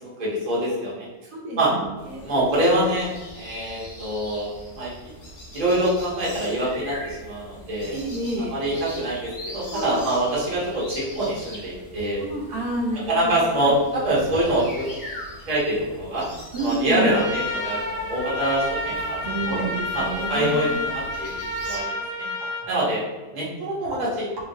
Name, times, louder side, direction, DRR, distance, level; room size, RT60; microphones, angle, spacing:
voice 1, 0.0-1.1 1.6-1.7 2.2-4.5 4.8-4.9 5.5-7.9 8.5-12.2 13.1-14.9 15.5-16.3 16.6-19.5 19.9-20.0 20.3-21.9 22.7-23.0 23.3-24.3, right 1 dB, 35° right, -6 dB, 0.9 m, -25 dB
voice 2, 1.2-2.6 7.9-8.6 9.6-10.1 12.2-13.8 16.5-17.2 19.2-20.7 22.4-22.7, right 2 dB, 75° right, -2 dB, 1.2 m, -30 dB
sound 1, 2.0-21.8, equal, 45° left, 0.8 m, -40 dB
Trumpet, 17.0-22.7, left 1 dB, 70° left, 0.6 m, -30 dB
3.5 x 2.6 x 2.6 m, 1.2 s
omnidirectional pair, 1.8 m